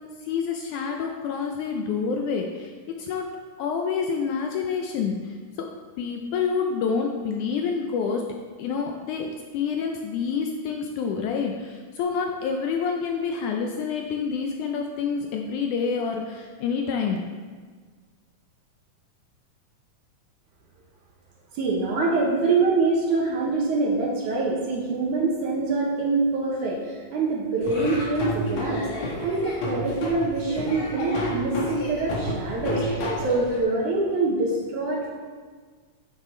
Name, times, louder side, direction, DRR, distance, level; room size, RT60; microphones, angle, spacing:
voice 1, 0.2-2.7 3.0-3.3 3.6-5.3 6.0-8.2 8.6-17.2, left 6 dB, 75° left, 2 dB, 2.0 m, -27 dB
voice 2, 21.5-28.8 29.2-35.1, right 3 dB, 70° right, -2 dB, 2.6 m, -25 dB
Laughter / Drum, 27.6-33.6, equal, 55° left, 2.9 m, -30 dB
9.5 x 9.3 x 3.8 m, 1.5 s
omnidirectional pair, 3.9 m